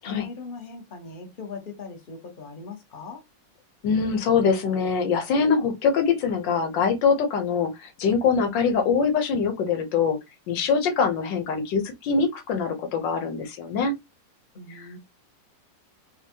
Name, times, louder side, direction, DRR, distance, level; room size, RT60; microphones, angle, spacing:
voice 1, 0.0-3.2 14.5-15.0, left 5 dB, 35° left, 1.0 m, -39 dB
voice 2, 3.8-10.2 10.5-13.9, left 5 dB, 85° left, 1.5 m, -23 dB
4.3 x 2.4 x 2.7 m
omnidirectional pair, 1.9 m